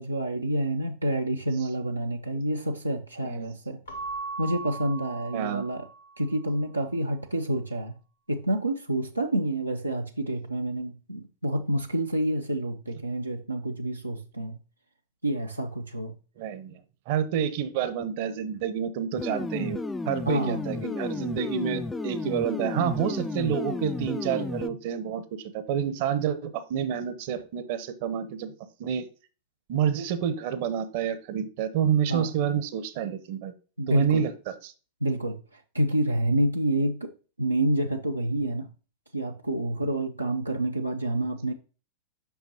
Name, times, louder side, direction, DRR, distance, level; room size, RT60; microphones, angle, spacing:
voice 1, 0.0-3.8 4.4-5.9 6.2-7.9 8.3-14.6 15.2-16.1 20.3-20.6 32.1-32.3 33.8-34.2 35.0-37.1 37.4-38.7 39.1-41.5, right 1 dB, 85° right, 0.5 m, -28 dB
Keyboard (musical) / Bell, 3.9-6.3, right 3 dB, 70° left, 1.1 m, -38 dB
voice 2, 5.3-5.7 16.4-16.8 17.1-19.8 20.0-28.5 28.8-29.1 29.7-33.5 33.9-34.3 34.6-34.7, right 8 dB, 50° right, 0.8 m, -28 dB
sound 1, 19.2-24.7, left 3 dB, 10° left, 0.3 m, -33 dB
7.9 x 5.8 x 2.8 m
figure-of-eight pair, 90°, 0 cm